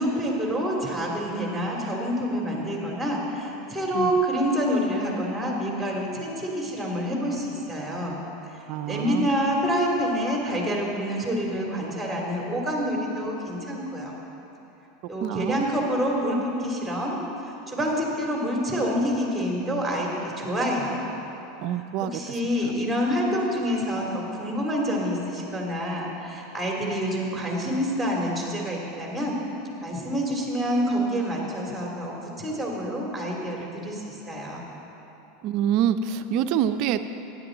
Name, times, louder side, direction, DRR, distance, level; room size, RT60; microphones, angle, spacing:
voice 1, 0.0-8.2 8.5-14.1 15.1-17.2 17.4-21.1 21.7-29.4 29.8-34.6, equal, 5° right, -2 dB, 2.9 m, -27 dB
voice 2, 8.7-9.3 15.2-15.6 21.6-22.2 35.4-37.0, right 9 dB, 55° right, 10 dB, 0.5 m, -26 dB
15.5 x 9.7 x 3.9 m, 3.0 s
hypercardioid pair, 100°, 0 cm